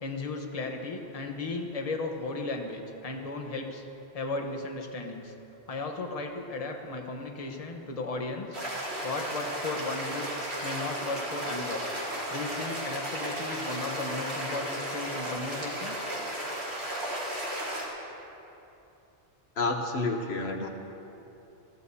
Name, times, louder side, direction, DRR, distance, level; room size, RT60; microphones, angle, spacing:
voice 1, 0.0-3.8 4.1-5.3 5.7-8.5 9.0-10.3 10.6-11.8 12.3-16.0, left 3 dB, 35° left, 2 dB, 1.1 m, -35 dB
sound 1, 8.5-17.9, right 1 dB, 70° right, 2.8 m, -34 dB
voice 2, 19.6-20.7, left 3 dB, 65° left, 3 dB, 1.1 m, -29 dB
21.5 x 15.0 x 2.8 m, 2.9 s
omnidirectional pair, 1.2 m